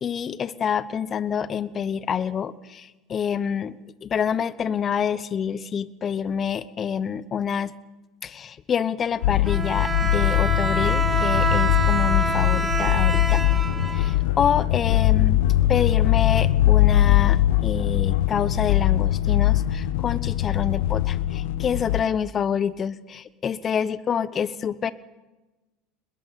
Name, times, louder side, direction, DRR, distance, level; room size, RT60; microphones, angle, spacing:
voice 1, 0.0-7.7 8.2-13.4 13.9-24.9, left 7 dB, 35° left, 16 dB, 1.0 m, -27 dB
sound 1, 9.2-22.0, left 14 dB, 70° left, 1.1 m, -21 dB
Bowed string instrument, 9.4-14.5, right 3 dB, 20° right, 2.0 m, -27 dB
23.0 x 21.0 x 5.9 m, 1.1 s
hypercardioid pair, 80°, 0 cm